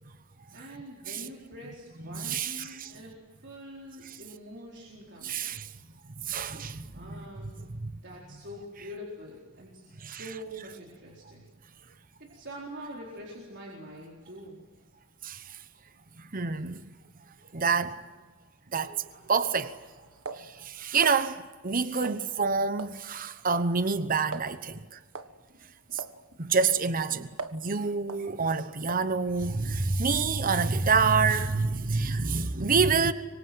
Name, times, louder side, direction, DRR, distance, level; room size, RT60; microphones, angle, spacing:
voice 1, 0.5-3.1 3.4-5.6 6.9-7.6 8.0-11.4 12.2-14.6 25.9-26.0, equal, 55° right, 4.3 m, -44 dB
voice 2, 2.1-2.9 4.1-4.2 5.2-5.7 6.2-7.2 7.6-7.9 10.0-10.2 15.2-15.6 16.2-16.9 17.5-18.0 18.7-19.0 19.3-19.8 20.3-25.0 25.9-26.0 26.4-33.1, right 4 dB, 40° right, 1.0 m, -27 dB
sound 1, 18.9-21.2 22.0-22.5 22.8-23.0 23.3-23.7 24.0-24.1 24.3-24.5 25.1-25.4 26.0-26.2 26.6-27.7 28.1-28.3 28.9-29.1, right 3 dB, 90° right, 1.5 m, -41 dB
26.0 x 24.5 x 7.8 m
head